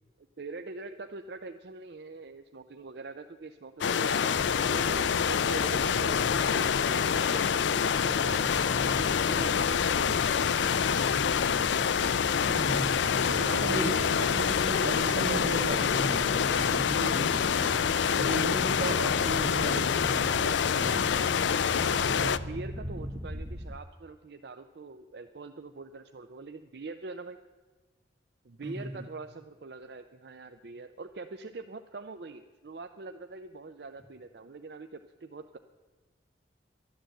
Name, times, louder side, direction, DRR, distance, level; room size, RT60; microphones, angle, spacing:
voice 1, 0.4-7.6 8.0-8.4 8.7-11.3 13.1-14.3 21.8-27.4 28.4-35.6, right 3 dB, 60° right, 7 dB, 0.5 m, -43 dB
sound 1, 3.8-22.4, left 7 dB, 75° left, 0.4 m, -26 dB
sound 2, 4.3-23.8, equal, 15° right, 0.6 m, -39 dB
voice 2, 12.5-13.0 13.5-21.2 28.6-29.1, right 1 dB, 85° right, 1 dB, 2.2 m, -36 dB
12.0 x 11.5 x 7.7 m, 1.3 s
head